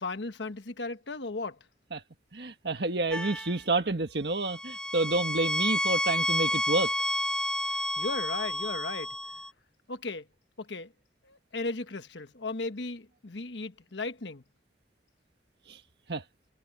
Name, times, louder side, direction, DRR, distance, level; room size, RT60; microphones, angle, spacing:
voice 1, 0.0-1.6 7.7-9.2 9.9-10.3 10.6-10.9 11.2-14.4, left 3 dB, 90° left, 1.3 m, -36 dB
voice 2, 2.3-6.9 15.7-15.8 16.1-16.2, right 2 dB, 65° right, 1.5 m, -29 dB
sound 1, 3.1-3.6 4.4-9.5, left 1 dB, 5° left, 2.0 m, -30 dB
head